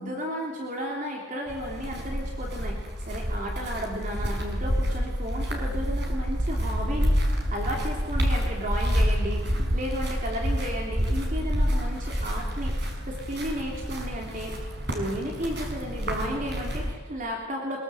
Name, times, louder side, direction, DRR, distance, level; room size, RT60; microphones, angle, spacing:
voice 1, 0.0-2.8 3.1-7.1 7.5-12.7 13.1-14.5 14.9-17.8, equal, 40° right, 0 dB, 3.4 m, -33 dB
sound 1, 1.5-16.9, equal, 60° right, 5.2 m, -28 dB
23.0 x 22.0 x 7.9 m, 1.3 s
head